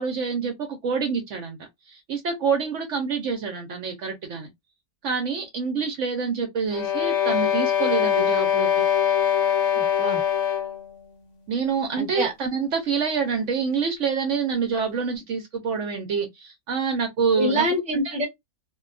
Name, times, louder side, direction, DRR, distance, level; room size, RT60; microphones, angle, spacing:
voice 1, 0.0-1.6 1.9-4.5 5.0-8.8 11.5-17.6 17.9-18.1, right 5 dB, 65° right, 0.8 m, -27 dB
sound 1, 6.7-10.9, left 9 dB, 60° left, 0.9 m, -22 dB
voice 2, 9.8-10.2 12.0-12.3 17.3-18.3, equal, 5° right, 0.5 m, -25 dB
2.6 x 2.2 x 2.3 m
omnidirectional pair, 1.6 m